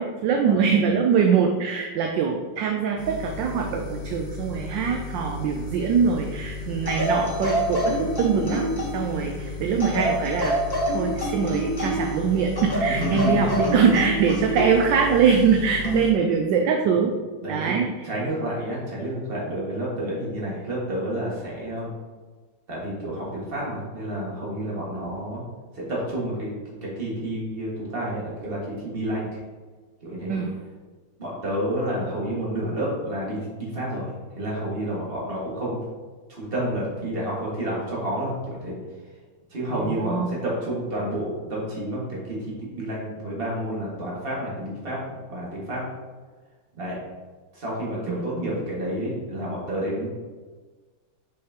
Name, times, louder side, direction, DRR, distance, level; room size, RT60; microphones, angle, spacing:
voice 1, 0.0-8.7 8.9-10.6 10.9-17.1 17.5-18.1 30.3-30.5 39.7-40.3 48.1-48.5, right 6 dB, 75° right, 2 dB, 1.1 m, -23 dB
sound 1, 3.0-16.1, left 3 dB, 75° left, 2.0 m, -35 dB
sound 2, 6.8-9.1 9.8-12.2 12.6-14.8 15.8-16.1, right 1 dB, 35° left, 0.3 m, -26 dB
voice 2, 12.9-13.5 17.4-17.8 18.0-21.9 22.7-25.4 25.7-29.4 30.0-30.4 31.2-35.8 36.3-38.8 39.5-45.8 46.8-47.0 47.5-50.1, right 1 dB, 25° right, -6 dB, 1.9 m, -30 dB
6.4 x 5.6 x 2.9 m, 1.4 s
omnidirectional pair, 2.4 m